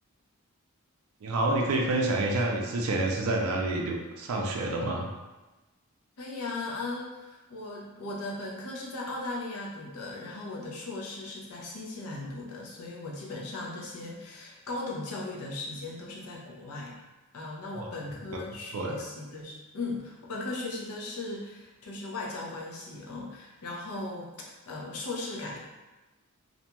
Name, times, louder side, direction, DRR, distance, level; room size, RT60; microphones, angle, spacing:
voice 1, 1.2-5.1 17.7-17.9 18.7-18.9, right 2 dB, 70° right, 0 dB, 0.4 m, -28 dB
voice 2, 6.2-17.0 17.3-25.6, left 2 dB, 85° left, -3 dB, 0.6 m, -37 dB
2.5 x 2.2 x 2.9 m, 1.1 s
head